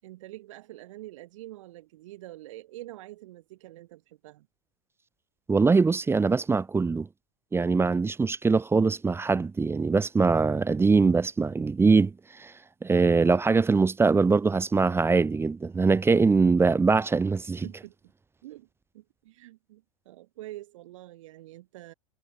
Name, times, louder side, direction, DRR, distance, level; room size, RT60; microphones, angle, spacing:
voice 1, 0.0-4.5 17.6-17.9 18.4-18.7 18.9-21.9, right 16 dB, 65° right, 7.7 m, -45 dB
voice 2, 5.5-7.1 7.5-12.5 12.8-17.7, right 4 dB, 15° right, 0.9 m, -22 dB
figure-of-eight pair, 85°, 17 cm